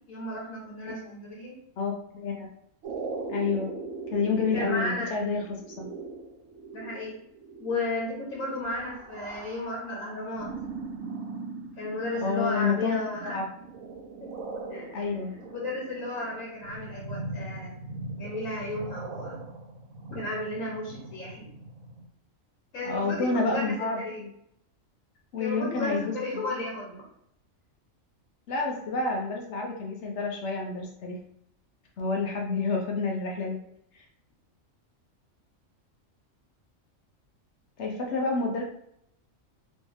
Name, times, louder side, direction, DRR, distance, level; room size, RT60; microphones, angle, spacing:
voice 1, 0.1-1.5 4.5-5.1 6.7-7.2 7.6-10.5 11.8-13.4 14.2-14.3 14.7-15.0 15.5-17.7 18.2-19.4 20.1-21.5 22.7-24.2 25.4-27.0, left 2 dB, 80° left, -4 dB, 1.4 m, -34 dB
voice 2, 1.8-2.5 3.3-3.7 4.1-5.9 12.2-13.5 14.9-15.3 22.8-24.3 25.3-26.5 28.5-31.2 32.0-33.6 33.9-34.0 37.8-38.6, left 4 dB, 65° left, 0 dB, 0.9 m, -29 dB
sound 1, 2.8-22.0, right 3 dB, 80° right, 1.1 m, -40 dB
3.2 x 3.1 x 3.2 m, 0.73 s
omnidirectional pair, 1.4 m